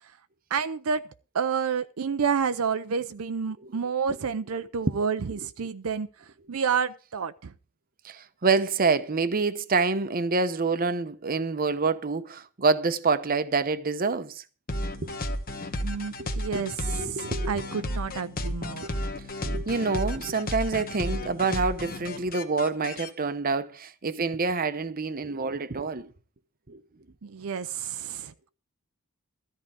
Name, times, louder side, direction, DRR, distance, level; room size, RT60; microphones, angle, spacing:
voice 1, 0.5-1.0 1.3-6.1 6.5-7.5 15.8-16.7 17.1-19.0 27.2-28.5, right 6 dB, 70° right, 0.5 m, -29 dB
voice 2, 8.0-14.4 15.0-15.1 16.2-16.7 17.0-17.6 18.8-18.9 19.4-26.1 26.7-26.8, right 4 dB, 40° right, 0.8 m, -27 dB
sound 1, 14.7-23.1, left 1 dB, 40° left, 1.2 m, -33 dB
13.5 x 4.7 x 8.9 m
head